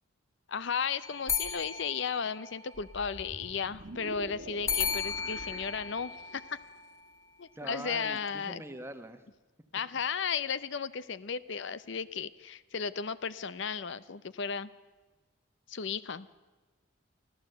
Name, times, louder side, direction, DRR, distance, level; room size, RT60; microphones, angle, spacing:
voice 1, 0.5-6.6 7.4-8.6 9.7-14.7 15.7-16.3, left 6 dB, 60° left, 16 dB, 0.6 m, -35 dB
sound 1, 1.0-3.0 4.7-7.1, left 6 dB, 15° left, 1.3 m, -35 dB
sound 2, 2.7-6.7, right 2 dB, 60° right, 1.6 m, -47 dB
voice 2, 7.5-9.2, right 1 dB, 10° right, 9 dB, 1.2 m, -43 dB
24.5 x 15.5 x 7.9 m, 1.2 s
head